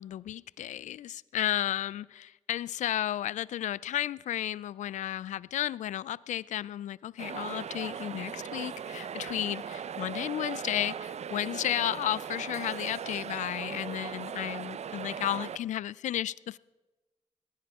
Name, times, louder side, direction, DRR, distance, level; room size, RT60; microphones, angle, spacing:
voice 1, 0.0-16.6, left 12 dB, 75° left, 0.4 m, -33 dB
sound 1, 7.2-15.6, right 7 dB, 60° right, 0.6 m, -38 dB
19.0 x 15.5 x 3.6 m
supercardioid pair, 40°, 13 cm